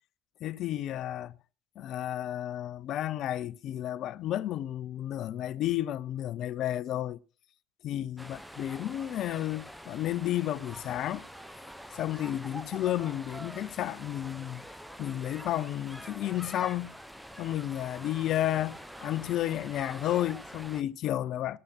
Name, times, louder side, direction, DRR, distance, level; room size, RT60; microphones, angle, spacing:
voice 1, 0.4-1.4 1.8-7.2 7.8-11.3 11.9-14.7 15.0-16.9 17.4-21.6, left 13 dB, 50° left, 0.5 m, -32 dB
sound 1, 8.2-20.8, equal, ahead, 0.8 m, -46 dB
16.0 x 12.5 x 2.8 m
figure-of-eight pair, 65°, 0 cm